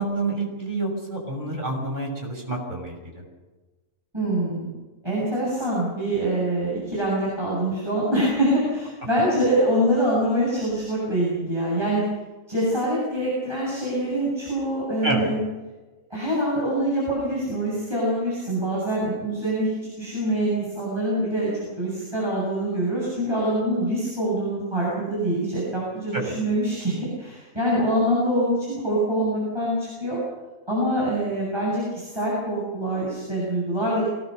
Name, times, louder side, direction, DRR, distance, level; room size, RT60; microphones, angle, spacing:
voice 1, 0.0-3.2 15.0-15.3 26.1-26.4, right 2 dB, 35° right, 0 dB, 6.6 m, -28 dB
voice 2, 4.1-4.8 5.0-12.0 12.5-15.4 16.1-19.7 20.0-21.5 21.8-30.2 30.7-34.0, right 1 dB, 20° right, -7 dB, 8.0 m, -25 dB
24.0 x 19.0 x 6.7 m, 1.2 s
omnidirectional pair, 1.4 m